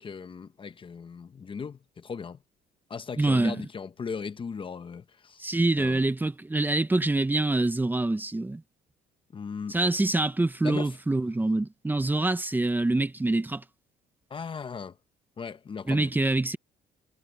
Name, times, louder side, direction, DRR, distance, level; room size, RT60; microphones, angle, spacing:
voice 1, 0.0-2.4 2.9-5.4 5.8-6.0 9.3-9.8 10.6-11.0 14.3-15.0 15.4-16.1, left 5 dB, 30° left, 1.0 m, -37 dB
voice 2, 3.2-3.6 5.4-8.6 9.7-13.6 15.9-16.6, right 2 dB, 10° right, 1.0 m, -25 dB
cardioid pair, 110°, 17 cm